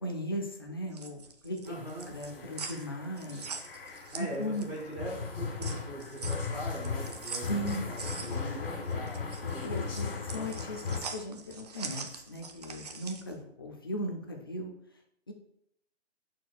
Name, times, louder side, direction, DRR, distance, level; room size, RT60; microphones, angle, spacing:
voice 1, 0.0-1.7 2.1-3.5 4.2-4.7 7.5-7.9 8.1-8.3 9.6-14.7 15.3-15.4, equal, 20° left, 2 dB, 0.5 m, -37 dB
sound 1, 0.7-4.9 5.2-13.3, right 5 dB, 35° right, 0.6 m, -43 dB
sound 2, 1.7-11.0, left 5 dB, 50° left, 1.8 m, -37 dB
voice 2, 1.7-2.6 4.1-9.9, right 1 dB, 5° right, -5 dB, 0.8 m, -42 dB
11.0 x 4.5 x 2.3 m, 0.72 s
hypercardioid pair, 165°, 34 cm